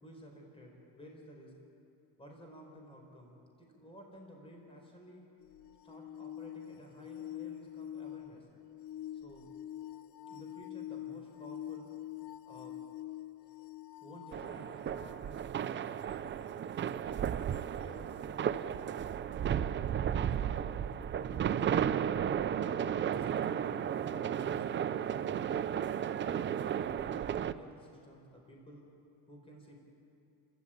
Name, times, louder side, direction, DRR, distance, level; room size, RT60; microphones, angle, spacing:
voice 1, 0.0-1.5 2.2-5.2 5.8-8.5 9.1-9.5 10.3-11.9 12.5-12.8 14.0-16.6 17.7-18.6 19.2-20.7 21.1-22.5 26.4-28.8 29.3-29.8, equal, 15° left, 0 dB, 4.9 m, -54 dB
sound 1, 5.4-15.2 17.5-17.6, left 12 dB, 65° left, 0.7 m, -45 dB
sound 2, 14.3-27.5, right 9 dB, 30° right, 0.6 m, -34 dB
29.5 x 14.0 x 9.2 m, 2.7 s
cardioid pair, 130°, 38 cm